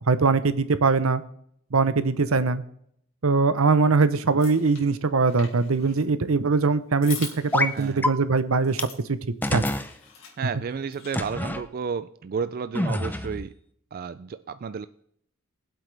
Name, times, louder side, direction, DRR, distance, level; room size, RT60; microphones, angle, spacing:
voice 1, 0.1-1.2 1.7-2.6 3.2-8.8 9.1-9.2 9.5-9.6, right 4 dB, 85° right, 0.8 m, -22 dB
sound 1, 4.3-4.8 5.2-6.0 7.0-7.9 8.6-9.0 9.4-10.3 10.9-11.3, left 7 dB, 75° left, 3.4 m, -41 dB
sound 2, 7.5-7.7 8.0-8.1 8.8-8.9 9.4-9.9 11.1-11.6 12.8-13.5, left 2 dB, 10° left, 0.5 m, -26 dB
voice 2, 7.7-8.1 10.4-13.5 13.9-14.9, right 6 dB, 45° right, 0.3 m, -32 dB
21.0 x 7.9 x 3.4 m
head